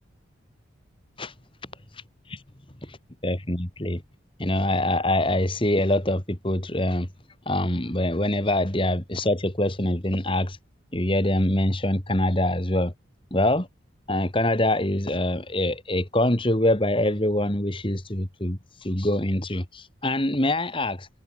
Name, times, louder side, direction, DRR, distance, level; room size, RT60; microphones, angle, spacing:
voice 1, 1.9-2.4 2.8-3.0 3.2-4.0 4.4-7.1 7.5-10.6 10.9-12.9 13.3-13.7 14.1-21.1, left 1 dB, 25° left, 2.6 m, -24 dB
head